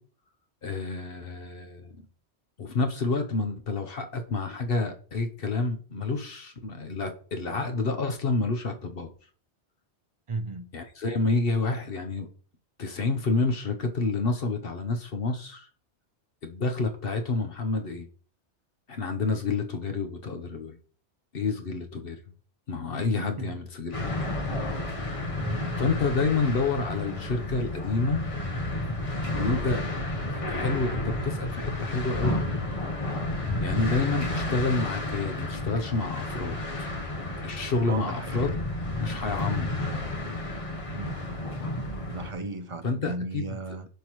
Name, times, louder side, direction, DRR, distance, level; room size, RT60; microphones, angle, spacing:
voice 1, 0.6-2.0 2.6-9.1 10.7-12.3 12.8-15.7 16.4-18.1 18.9-20.8 21.3-22.2 22.7-24.3 25.8-28.2 29.4-29.8 30.3-32.5 33.6-36.9 37.4-38.5 39.0-40.0 42.8-43.6, left 3 dB, 55° left, 1.1 m, -29 dB
voice 2, 10.3-10.7 23.4-23.5 25.4-25.8 34.3-34.4 37.9-38.6 40.9-43.9, right 3 dB, 35° right, 0.6 m, -36 dB
sound 1, 23.9-42.3, left 2 dB, 30° left, 1.0 m, -31 dB
10.0 x 5.3 x 3.1 m
omnidirectional pair, 1.2 m